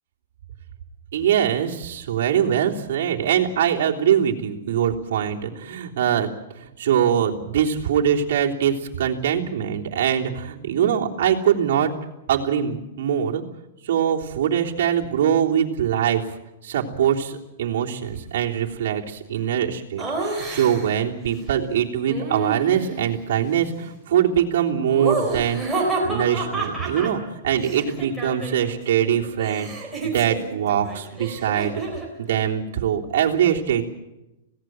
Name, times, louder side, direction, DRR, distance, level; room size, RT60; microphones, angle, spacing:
voice 1, 1.1-6.3 6.5-11.9 12.3-13.4 13.8-16.2 16.6-29.7 30.0-31.7 32.2-33.8, right 9 dB, 60° right, -1 dB, 3.3 m, -23 dB
Laughter, 20.0-21.0 22.1-23.1 24.9-28.8 29.0-32.1, right 3 dB, ahead, 4.0 m, -29 dB
26.0 x 17.5 x 7.8 m, 0.97 s
supercardioid pair, 170°, 0 cm